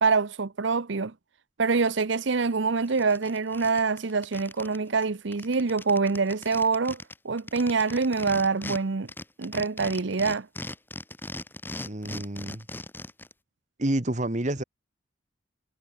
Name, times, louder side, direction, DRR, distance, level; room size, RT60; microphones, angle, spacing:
voice 1, 0.0-1.1 1.6-7.0 7.2-9.1 9.4-10.5, right 4 dB, 70° right, 0.8 m, -25 dB
sound 1, 2.4-2.5 2.9-4.8 5.0-5.1 5.3-8.8 9.1-13.3, left 1 dB, 10° left, 7.2 m, -39 dB
voice 2, 11.8-12.7 13.8-14.6, right 1 dB, 40° right, 1.3 m, -29 dB
head